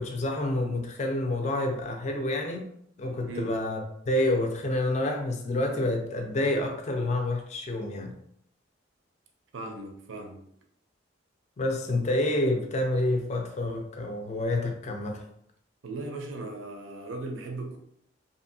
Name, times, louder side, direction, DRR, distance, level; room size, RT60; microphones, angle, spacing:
voice 1, 0.0-2.7 3.0-8.2 11.6-15.2, left 1 dB, 35° left, 0.4 m, -28 dB
voice 2, 9.5-10.5 15.8-17.8, right 2 dB, 80° right, 0.5 m, -37 dB
2.6 x 2.6 x 2.6 m
head